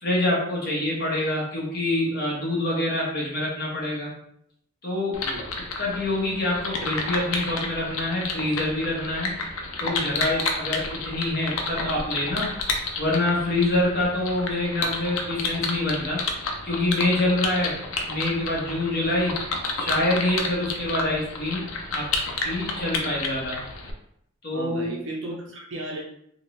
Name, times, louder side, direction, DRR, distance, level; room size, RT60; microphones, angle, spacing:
voice 1, 0.0-4.1 4.8-5.2 5.8-9.4 9.8-12.5 13.0-16.2 16.6-17.8 18.1-19.3 19.8-22.0 22.4-23.6 24.4-24.9, left 1 dB, 50° left, -4 dB, 1.0 m, -26 dB
sound 1, 5.1-23.9, left 3 dB, 85° left, 0.5 m, -31 dB
voice 2, 24.5-26.0, right 1 dB, 60° right, -2 dB, 0.8 m, -34 dB
2.9 x 2.6 x 3.0 m, 0.72 s
head